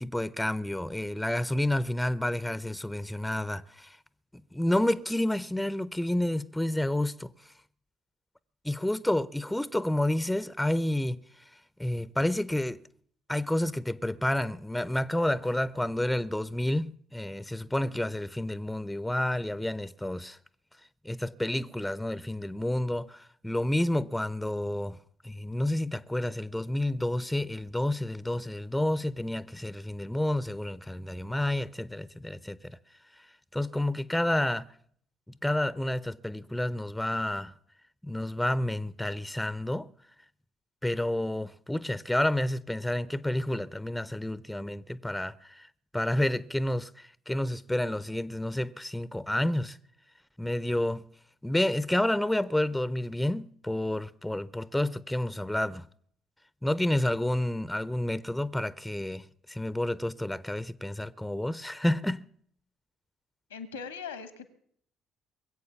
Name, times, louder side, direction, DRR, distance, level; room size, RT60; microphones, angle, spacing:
voice 1, 0.0-4.0 4.5-7.3 8.6-11.2 11.8-12.8 13.3-20.4 21.0-25.0 25.2-32.8 33.5-34.7 35.4-37.5 38.0-39.9 40.8-45.7 45.9-49.8 50.4-51.0 51.4-55.9 56.6-62.2, left 1 dB, 5° left, 0.6 m, -30 dB
voice 2, 63.5-64.5, left 6 dB, 85° left, 1.3 m, -40 dB
22.0 x 8.2 x 7.0 m
figure-of-eight pair, 45°, 0 cm